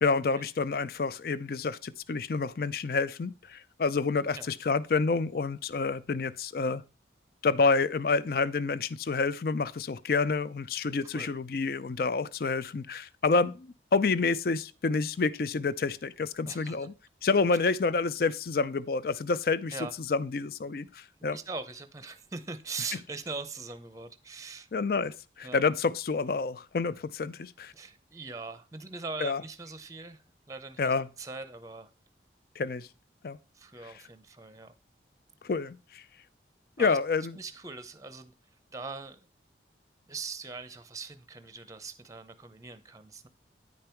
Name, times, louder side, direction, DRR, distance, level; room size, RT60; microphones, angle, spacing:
voice 1, 0.0-6.8 7.4-16.9 17.2-19.7 20.1-21.4 24.7-27.7 29.2-29.4 30.8-31.1 32.6-32.9 33.2-33.4 35.4-36.0 36.8-37.3, left 4 dB, 55° left, 0.4 m, -28 dB
voice 2, 16.5-16.9 19.7-19.9 21.3-24.7 25.4-25.6 27.7-31.9 33.5-34.7 36.8-37.0 37.3-38.3 38.7-39.2 40.1-43.3, right 4 dB, 20° right, 0.6 m, -41 dB
9.6 x 5.3 x 4.4 m
head